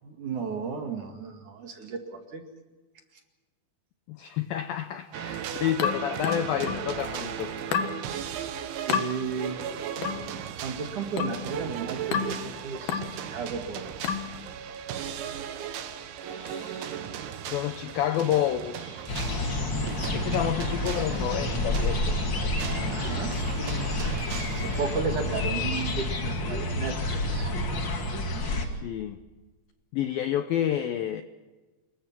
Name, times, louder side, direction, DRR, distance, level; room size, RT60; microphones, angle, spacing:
voice 1, 0.0-2.4 5.2-5.4 8.9-9.8 10.6-14.2 22.5-23.4 24.5-27.5, right 5 dB, 50° right, 4 dB, 2.9 m, -34 dB
voice 2, 4.1-7.5 16.3-17.1 17.5-19.1 20.1-22.2 28.5-29.2 29.9-31.2, left 11 dB, 85° left, 9 dB, 2.1 m, -30 dB
sound 1, 5.1-25.0, right 9 dB, 80° right, 3.8 m, -37 dB
sound 2, 5.8-6.9 7.7-8.0 8.9-9.1 10.0-10.3 11.2-11.5 12.1-12.4 12.9-13.2 14.0-14.3, left 7 dB, 60° left, 2.9 m, -29 dB
sound 3, 19.1-28.7, left 1 dB, 40° left, 1.8 m, -29 dB
27.0 x 22.0 x 6.0 m, 1.3 s
omnidirectional pair, 5.3 m